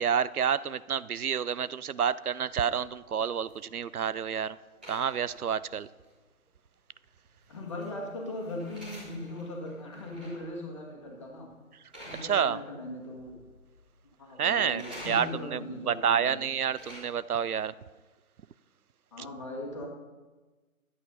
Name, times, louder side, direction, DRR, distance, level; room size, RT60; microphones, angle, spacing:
voice 1, 0.0-4.6 4.9-5.9 12.2-12.6 14.4-15.6 15.9-17.7, right 8 dB, 80° right, 18 dB, 0.6 m, -29 dB
sound 1, 2.5-4.3 4.8-5.8 6.0-6.1 7.4-10.6 11.0-11.3 11.9-12.9 13.2-13.8 14.8-15.6 16.4-17.0, equal, 5° right, 0.9 m, -49 dB
voice 2, 7.5-11.5 12.0-13.4 14.2-16.4 19.1-19.9, left 1 dB, 20° left, 0 dB, 1.6 m, -39 dB
11.0 x 8.4 x 5.6 m, 1.3 s
figure-of-eight pair, 155°, 43 cm